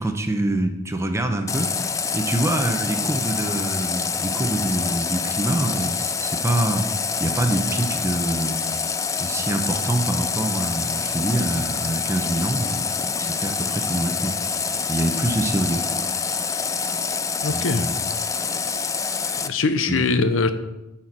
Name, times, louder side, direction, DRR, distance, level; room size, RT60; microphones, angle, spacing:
voice 1, 0.0-1.7 2.1-8.6 9.2-12.9 13.2-14.4 14.9-15.9 17.5-17.9 19.9-20.1, right 1 dB, 15° right, 6 dB, 0.7 m, -25 dB
Water tap faucet, 1.5-19.5, left 5 dB, 15° left, 0.3 m, -26 dB
voice 2, 17.4-17.8 19.4-20.5, left 4 dB, 75° left, 10 dB, 0.7 m, -22 dB
9.2 x 4.4 x 6.1 m, 0.99 s
head